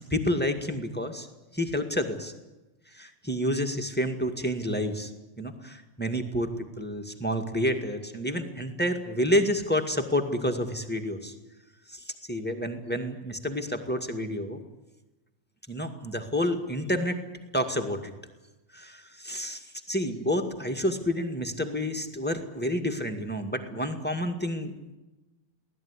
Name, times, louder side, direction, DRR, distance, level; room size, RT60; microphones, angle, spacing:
voice 1, 0.1-1.3 1.5-2.3 2.9-5.1 5.4-11.3 11.9-14.6 15.7-17.2 17.5-18.1 18.7-24.7, equal, 5° left, 6 dB, 0.9 m, -29 dB
24.0 x 17.5 x 9.9 m, 1.0 s
omnidirectional pair, 3.9 m